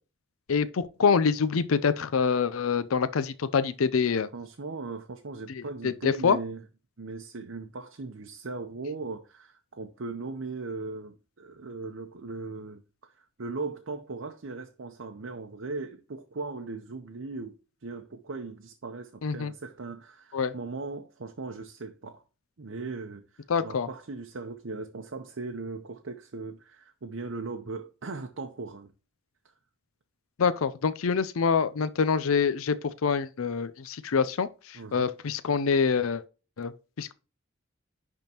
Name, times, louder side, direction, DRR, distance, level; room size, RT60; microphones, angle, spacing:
voice 1, 0.5-4.3 5.6-6.4 19.2-19.5 20.3-20.5 23.5-23.9 30.4-36.2 36.6-37.1, left 5 dB, 85° left, 0.5 m, -26 dB
voice 2, 4.3-6.6 7.0-22.2 22.6-28.9 34.7-35.1, right 3 dB, 65° right, 0.7 m, -38 dB
10.5 x 3.6 x 2.9 m
head